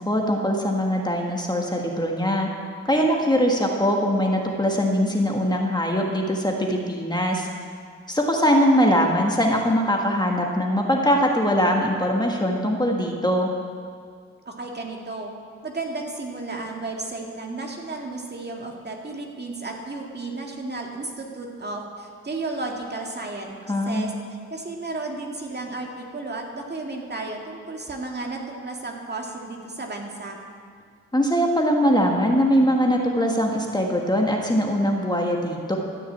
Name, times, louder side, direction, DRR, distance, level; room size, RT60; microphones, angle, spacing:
voice 1, 0.0-2.5 2.8-7.5 8.1-13.5 23.7-24.1 31.1-35.8, equal, 15° left, 0 dB, 1.6 m, -22 dB
voice 2, 14.5-15.3 15.6-23.6 23.8-24.1 24.5-30.4, right 2 dB, 35° right, 0 dB, 2.0 m, -33 dB
13.5 x 6.3 x 8.6 m, 2.1 s
cardioid pair, 70°, 30 cm